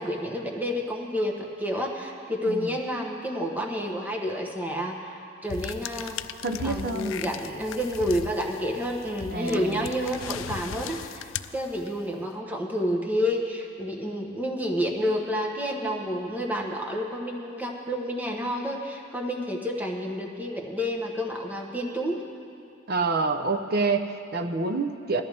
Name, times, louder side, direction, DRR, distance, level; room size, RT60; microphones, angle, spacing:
voice 1, 0.0-6.2 6.6-22.2, equal, 10° right, 0 dB, 1.1 m, -29 dB
voice 2, 2.5-2.8 6.4-7.1 9.3-9.9 22.9-25.2, right 3 dB, 50° right, 7 dB, 0.7 m, -27 dB
sound 1, 5.5-12.1, left 9 dB, 75° left, 0.4 m, -38 dB
20.0 x 13.5 x 3.5 m, 2.5 s
head